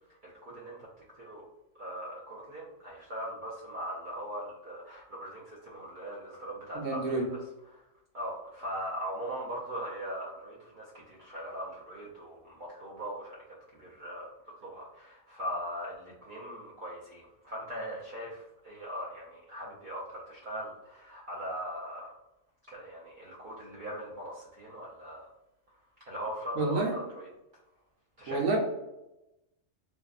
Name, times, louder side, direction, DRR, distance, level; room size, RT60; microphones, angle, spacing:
voice 1, 0.2-0.9 1.2-1.5 1.7-7.2 7.7-7.8 8.1-13.4 13.7-22.1 22.7-25.3 26.1-27.3 28.2-28.6, equal, 60° right, -6 dB, 0.5 m, -40 dB
voice 2, 6.7-7.3 26.6-26.9 28.3-28.6, right 3 dB, 80° right, 0 dB, 1.0 m, -28 dB
2.5 x 2.4 x 2.3 m, 0.92 s
omnidirectional pair, 1.4 m